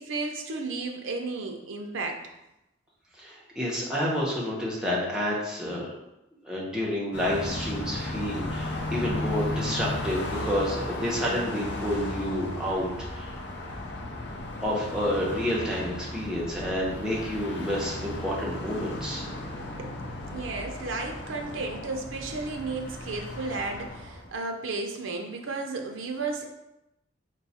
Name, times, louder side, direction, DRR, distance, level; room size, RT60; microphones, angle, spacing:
voice 1, 0.0-2.2 19.8-26.4, right 3 dB, 90° right, 3 dB, 0.6 m, -33 dB
voice 2, 3.2-5.9 6.4-13.4 14.6-19.2, equal, 5° right, -5 dB, 0.8 m, -29 dB
Car passing by, 7.1-24.3, left 1 dB, 60° left, 0.6 m, -35 dB
4.6 x 2.3 x 4.1 m, 0.90 s
head